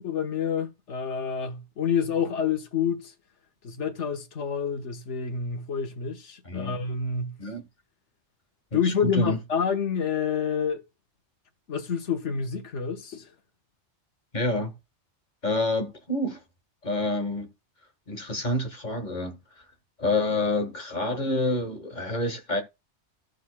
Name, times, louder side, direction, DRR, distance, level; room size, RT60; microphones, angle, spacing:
voice 1, 0.0-3.1 3.6-7.4 8.7-10.8 11.7-13.3, left 6 dB, 90° left, 1.5 m, -28 dB
voice 2, 8.7-9.4 14.3-14.7 15.4-16.4 16.8-17.5 18.1-19.4 20.0-22.6, left 2 dB, 40° left, 1.6 m, -28 dB
15.0 x 6.6 x 2.2 m
omnidirectional pair, 1.2 m